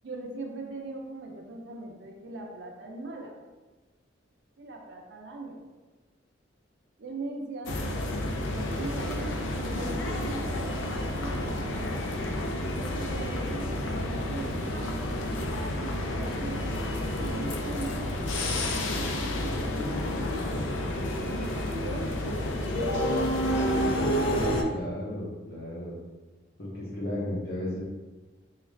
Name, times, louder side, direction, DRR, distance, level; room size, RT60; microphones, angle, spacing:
voice 1, 0.0-3.4 4.6-5.6 7.0-12.1 12.8-15.1 15.6-18.2 18.9-20.0 21.2-23.4, right 2 dB, 60° right, 0 dB, 0.5 m, -40 dB
sound 1, 7.7-24.6, left 1 dB, 75° left, 0.4 m, -30 dB
voice 2, 24.2-25.9 26.6-27.8, left 1 dB, 55° left, -8 dB, 0.8 m, -34 dB
3.6 x 2.3 x 3.2 m, 1.2 s
head